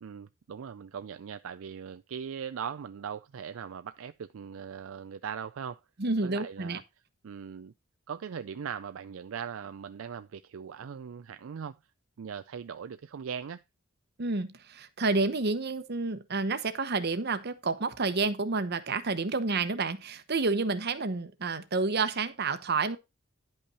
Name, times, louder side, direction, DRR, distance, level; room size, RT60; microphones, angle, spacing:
voice 1, 0.0-5.8 6.2-6.8 7.2-7.7 8.1-11.8 12.2-13.6, right 7 dB, 70° right, 0.4 m, -40 dB
voice 2, 6.0-6.8 14.2-23.0, right 3 dB, 50° right, 1.0 m, -29 dB
10.5 x 5.6 x 4.1 m
head